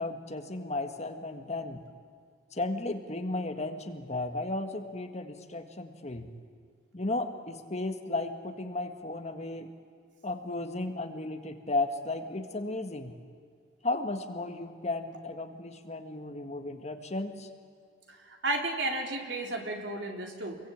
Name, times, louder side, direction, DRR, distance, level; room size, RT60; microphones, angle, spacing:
voice 1, 0.0-1.8 2.5-6.3 6.9-9.7 10.2-13.1 13.8-17.5, left 2 dB, 40° left, 6 dB, 1.8 m, -34 dB
voice 2, 18.1-20.6, right 2 dB, 70° right, 2 dB, 3.8 m, -33 dB
28.5 x 22.5 x 8.8 m, 2.1 s
head